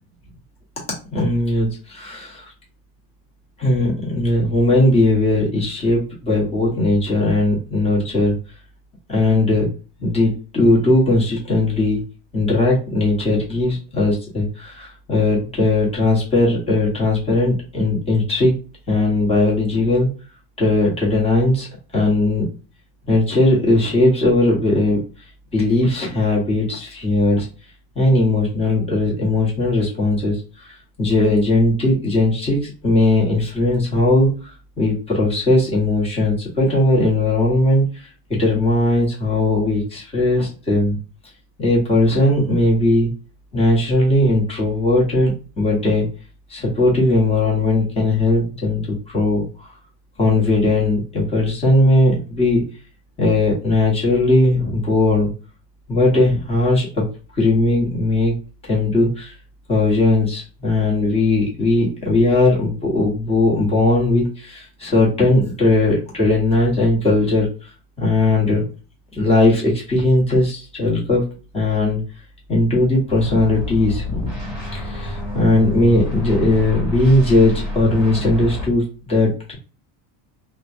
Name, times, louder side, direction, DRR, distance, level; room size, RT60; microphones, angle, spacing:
voice 1, 1.1-2.4 3.6-8.4 9.1-9.7 10.0-12.0 12.3-18.6 18.9-20.1 20.6-21.7 21.9-22.4 23.1-25.0 25.5-27.5 27.9-38.1 38.4-41.0 41.6-43.1 43.5-46.1 46.5-49.5 50.2-52.7 53.2-55.3 55.9-57.1 57.4-58.3 58.6-59.3 59.7-67.7 68.0-68.6 69.2-71.3 71.5-72.0 72.5-79.5, left 2 dB, 10° left, -4 dB, 1.0 m, -18 dB
sound 1, 73.1-78.7, left 1 dB, 10° right, 1.1 m, -28 dB
3.2 x 2.2 x 2.5 m, 0.35 s
cardioid pair, 150°, 48 cm